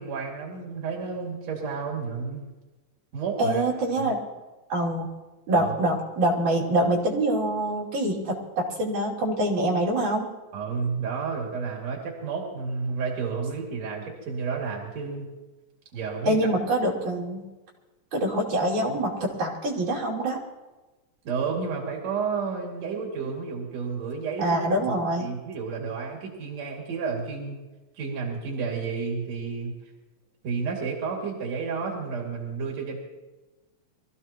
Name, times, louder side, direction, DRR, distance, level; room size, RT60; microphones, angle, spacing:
voice 1, 0.0-2.4 3.1-3.6 4.0-4.1 5.5-5.8 10.5-15.3 15.9-16.5 21.3-24.7 25.2-27.6 28.0-29.7 30.4-33.0, right 5 dB, 60° right, -1 dB, 3.6 m, -31 dB
voice 2, 3.4-4.2 4.7-5.1 5.5-10.3 16.2-17.5 18.1-20.4 23.2-23.3 24.4-25.3, right 1 dB, 75° right, -4 dB, 4.2 m, -25 dB
24.0 x 15.0 x 3.0 m, 1.2 s
omnidirectional pair, 3.5 m